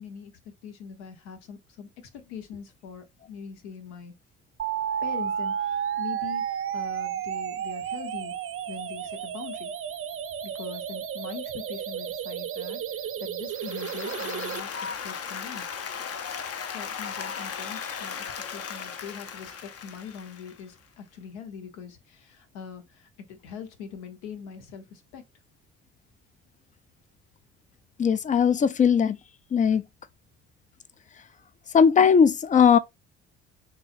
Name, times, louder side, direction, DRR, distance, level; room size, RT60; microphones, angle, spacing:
voice 1, 0.0-1.9 2.2-4.1 5.0-6.4 6.7-8.3 8.7-9.7 10.4-14.7 15.0-15.7 16.6-25.2, left 7 dB, 75° left, 0.9 m, -42 dB
sound 1, 4.6-14.6, right 9 dB, 35° right, 0.5 m, -32 dB
Applause, 13.5-20.7, left 6 dB, 40° left, 0.7 m, -36 dB
voice 2, 28.0-29.2 29.5-29.8 31.7-32.8, left 7 dB, 25° left, 0.3 m, -19 dB
3.9 x 3.0 x 2.5 m
hypercardioid pair, 50°, 36 cm